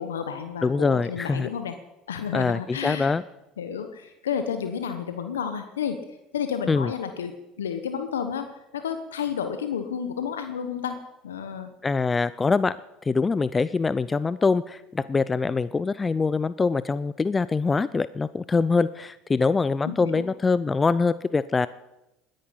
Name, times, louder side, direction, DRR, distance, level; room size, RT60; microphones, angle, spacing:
voice 1, 0.0-1.7 2.1-3.1 3.6-6.0 6.3-8.5 8.7-11.0 11.2-11.7 19.8-20.2, left 7 dB, 90° left, 8 dB, 1.0 m, -31 dB
voice 2, 0.6-1.5 2.3-3.2 6.7-6.9 11.8-12.8 13.0-21.7, left 4 dB, 25° left, 17 dB, 0.5 m, -24 dB
20.5 x 10.5 x 5.7 m, 0.93 s
hypercardioid pair, 75°, 0 cm